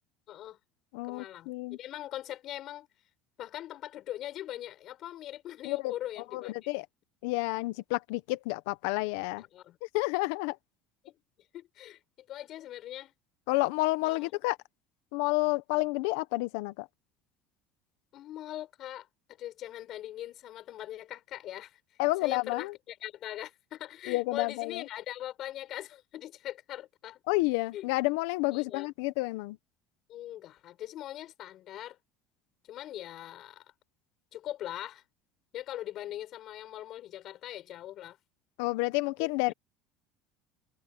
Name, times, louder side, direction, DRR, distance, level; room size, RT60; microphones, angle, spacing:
voice 1, 0.3-0.6 1.1-2.9 3.4-6.7 9.4-9.8 11.0-11.1 11.5-12.0 12.3-13.1 14.0-14.3 18.1-19.1 19.4-21.8 22.2-27.2 27.7-27.9 28.5-28.9 30.1-32.0 32.7-33.6 34.3-35.0 35.5-38.2 39.2-39.3, left 13 dB, 55° left, 6.3 m, -41 dB
voice 2, 0.9-1.8 5.6-5.9 6.3-6.8 7.2-9.4 9.9-10.6 13.5-14.6 15.1-16.9 22.0-22.7 24.1-24.8 27.3-29.6 38.6-39.5, left 22 dB, 80° left, 1.3 m, -30 dB
supercardioid pair, 100°, 0 cm